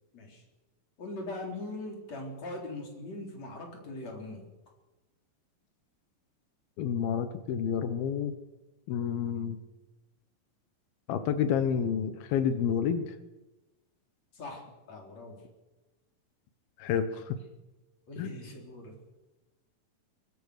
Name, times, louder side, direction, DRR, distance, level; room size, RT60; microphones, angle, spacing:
voice 1, 1.0-4.4 14.3-15.4 18.1-19.0, left 2 dB, 45° left, 1 dB, 5.1 m, -41 dB
voice 2, 6.8-8.3 8.9-9.6 11.1-13.1 16.8-17.4 18.2-18.3, left 8 dB, 85° left, 10 dB, 3.0 m, -29 dB
22.5 x 20.5 x 6.5 m, 1.1 s
omnidirectional pair, 4.2 m